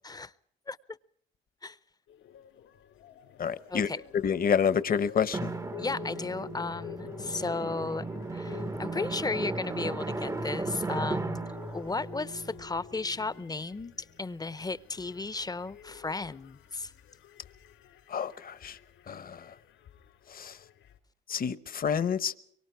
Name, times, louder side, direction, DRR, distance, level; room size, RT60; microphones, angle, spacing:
sound 1, 2.1-21.0, left 9 dB, 80° left, 3.6 m, -49 dB
voice 1, 3.4-5.5 18.1-18.8 19.1-19.5 20.3-20.6 21.3-22.3, left 7 dB, 45° left, 1.1 m, -29 dB
Drum, 5.3-13.6, right 3 dB, 15° right, 0.8 m, -36 dB
voice 2, 5.8-8.1 8.3-16.9, left 3 dB, 20° left, 0.8 m, -34 dB
24.5 x 23.5 x 4.7 m
cardioid pair, 90°, 20 cm